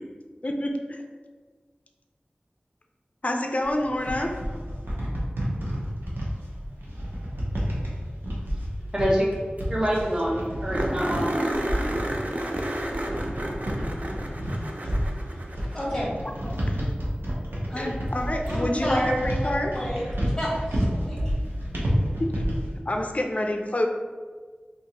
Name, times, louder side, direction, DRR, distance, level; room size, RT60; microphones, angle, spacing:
voice 1, 0.4-1.0 3.2-4.3 16.4-16.8 17.7-19.7 22.2-22.3 22.9-23.9, left 1 dB, 40° left, 3 dB, 0.4 m, -28 dB
sound 1, 3.6-22.7, equal, 80° right, 0.8 m, -30 dB
voice 2, 8.9-9.3 9.7-11.7, equal, 20° right, -4 dB, 0.8 m, -26 dB
sound 2, 9.3-9.4 9.6-9.7 10.0-10.1 10.7-16.1 18.5-18.6 21.4-21.5, right 1 dB, 45° right, 0.5 m, -31 dB
voice 3, 15.7-16.1 16.6-16.7 17.7-17.9 18.5-21.2, equal, 5° left, -7 dB, 1.4 m, -30 dB
2.8 x 2.5 x 4.0 m, 1.5 s
wide cardioid pair, 50°, 4 cm